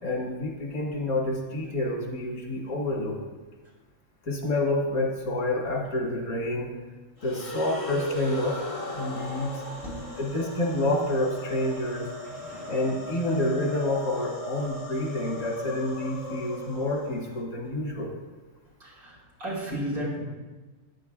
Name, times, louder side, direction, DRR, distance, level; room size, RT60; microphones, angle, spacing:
voice 1, 0.0-3.2 4.2-6.8 7.2-8.6 8.9-9.6 10.2-12.1 12.7-18.1, left 1 dB, 85° left, -2 dB, 2.3 m, -28 dB
sound 1, 7.2-17.4, left 1 dB, 25° left, 1.5 m, -38 dB
voice 2, 9.7-10.2 12.2-12.9 14.1-14.2 15.0-15.1 18.8-20.2, equal, 85° right, -5 dB, 3.6 m, -35 dB
12.5 x 9.9 x 2.4 m, 1.3 s
omnidirectional pair, 1.5 m